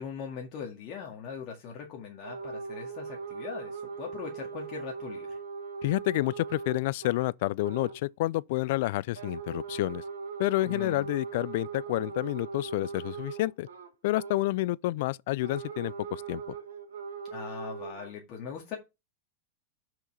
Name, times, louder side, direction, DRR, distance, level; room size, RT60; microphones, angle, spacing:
voice 1, 0.0-5.4 10.7-11.1 17.3-18.7, left 6 dB, 45° left, 2.0 m, -40 dB
sound 1, 2.2-7.3 7.6-8.0 9.1-14.5 15.4-18.1, right 5 dB, 80° right, 1.6 m, -40 dB
voice 2, 5.8-10.0 10.4-13.7 14.0-16.4, left 18 dB, 60° left, 0.3 m, -29 dB
5.8 x 5.8 x 4.2 m
hypercardioid pair, 100°, 0 cm